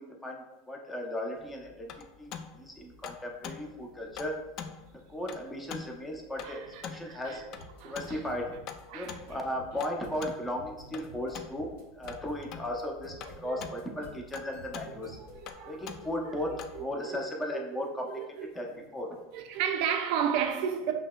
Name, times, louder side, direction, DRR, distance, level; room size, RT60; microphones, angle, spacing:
voice 1, 0.0-1.9 2.2-4.3 5.1-7.4 7.8-8.6 8.9-11.7 12.0-15.2 15.7-18.1 18.5-19.1, left 1 dB, 10° left, 0.7 m, -36 dB
sound 1, 1.4-16.8, left 7 dB, 50° left, 0.3 m, -46 dB
voice 2, 6.4-7.4 7.8-8.3 8.9-9.2 13.4-13.6 15.3-16.3 16.7-17.2 17.5-18.6 19.3-20.9, right 8 dB, 60° right, 0.5 m, -34 dB
sound 2, 7.3-15.5, equal, 70° left, 1.0 m, -52 dB
5.6 x 2.2 x 2.2 m
supercardioid pair, 110°, 0 cm